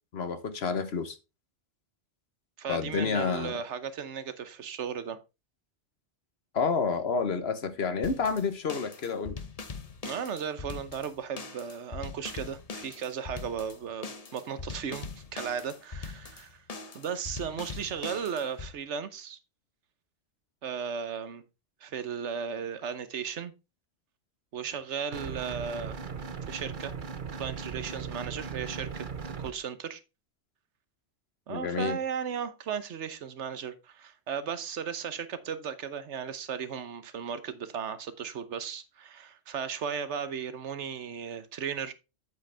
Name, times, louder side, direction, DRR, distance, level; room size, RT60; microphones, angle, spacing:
voice 1, 0.1-1.2 2.7-3.5 6.5-9.4 31.5-32.0, left 5 dB, 65° left, 1.3 m, -29 dB
voice 2, 2.6-5.2 10.0-16.6 16.9-19.4 20.6-21.4 21.8-23.5 24.5-26.0 26.5-26.9 27.4-29.1 29.4-30.0 31.5-41.9, right 7 dB, 85° right, 1.2 m, -36 dB
sound 1, 8.0-18.7, left 4 dB, 35° left, 0.9 m, -42 dB
sound 2, 25.1-29.5, right 5 dB, 50° right, 1.1 m, -38 dB
8.3 x 7.7 x 3.3 m
omnidirectional pair, 1.2 m